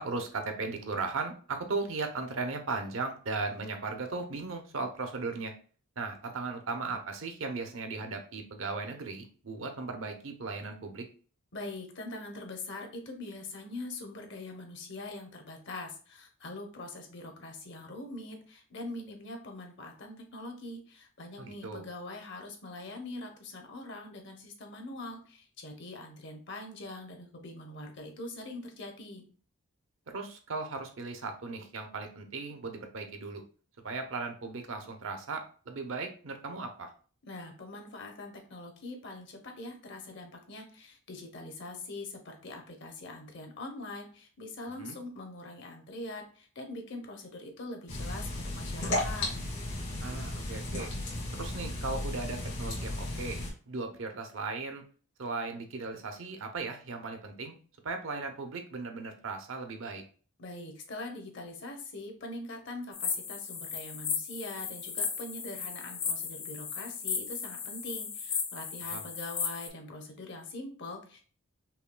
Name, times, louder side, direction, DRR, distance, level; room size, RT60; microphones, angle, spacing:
voice 1, 0.0-5.5 6.0-11.1 21.4-21.8 30.1-33.4 33.8-36.9 44.8-45.0 50.0-50.9 51.4-53.4 53.7-54.8 55.2-57.6 57.8-60.0 68.8-69.1, right 3 dB, 65° right, 5 dB, 0.6 m, -37 dB
voice 2, 11.5-29.3 37.3-49.3 60.4-71.2, left 2 dB, 55° left, 4 dB, 0.8 m, -43 dB
sound 1, 47.9-53.5, left 1 dB, 70° left, 1.8 m, -35 dB
sound 2, 62.9-69.7, left 6 dB, 25° left, 0.4 m, -35 dB
5.6 x 2.3 x 2.2 m, 0.41 s
head